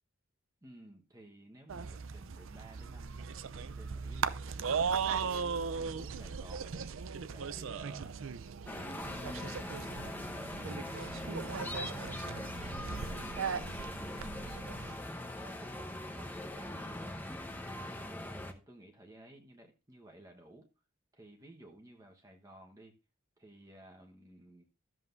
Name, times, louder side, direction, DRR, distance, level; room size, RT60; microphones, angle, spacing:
voice 1, 0.6-8.2 8.6-14.5 15.3-17.2 17.5-20.7 21.1-23.0 23.4-24.6, right 1 dB, 15° right, 1 dB, 1.1 m, -55 dB
sound 1, 1.7-15.0, right 6 dB, 75° right, 0.5 m, -38 dB
sound 2, 8.7-18.5, left 1 dB, 10° left, 0.9 m, -41 dB
13.0 x 7.4 x 2.6 m, 0.31 s
head